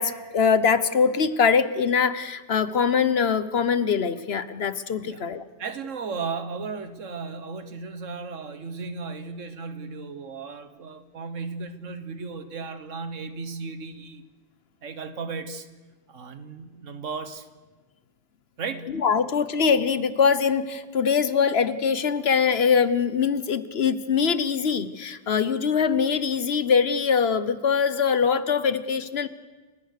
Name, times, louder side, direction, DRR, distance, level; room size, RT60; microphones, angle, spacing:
voice 1, 0.0-5.4 19.0-29.3, left 6 dB, 55° left, 14 dB, 1.1 m, -23 dB
voice 2, 5.6-14.2 14.8-15.7 16.1-17.5 18.6-19.0, right 4 dB, 80° right, 10 dB, 1.6 m, -35 dB
30.0 x 16.0 x 6.6 m, 1.3 s
omnidirectional pair, 1.3 m